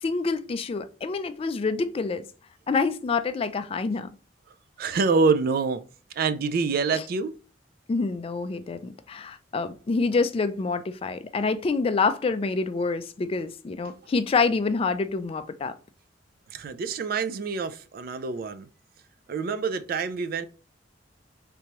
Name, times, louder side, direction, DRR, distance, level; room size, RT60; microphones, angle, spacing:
voice 1, 0.0-2.3 2.7-4.1 6.9-7.0 7.9-15.8, left 4 dB, 30° left, 0.3 m, -27 dB
voice 2, 4.8-5.8 6.2-7.3 16.5-18.7 19.3-20.5, right 4 dB, 55° right, 0.3 m, -26 dB
3.3 x 3.0 x 2.9 m
head